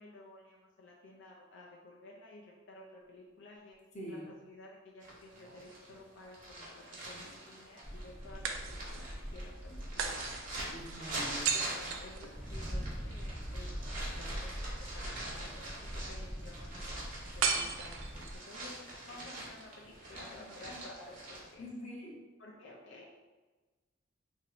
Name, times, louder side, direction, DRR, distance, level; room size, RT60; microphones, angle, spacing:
voice 1, 0.0-3.8 4.1-9.1 9.3-10.2 11.5-21.7 22.4-23.1, left 2 dB, 60° left, -3 dB, 0.5 m, -53 dB
voice 2, 3.9-4.3 10.7-11.5 21.6-22.2, equal, 35° left, -3 dB, 0.8 m, -44 dB
sound 1, 5.0-21.5, right 1 dB, 40° right, 1.0 m, -45 dB
sound 2, 5.3-6.4 8.4-9.2 10.0-12.8 17.4-18.5, right 6 dB, 80° right, 0.4 m, -36 dB
sound 3, 7.8-18.4, equal, 5° left, 0.6 m, -43 dB
3.0 x 2.7 x 4.0 m, 1.2 s
head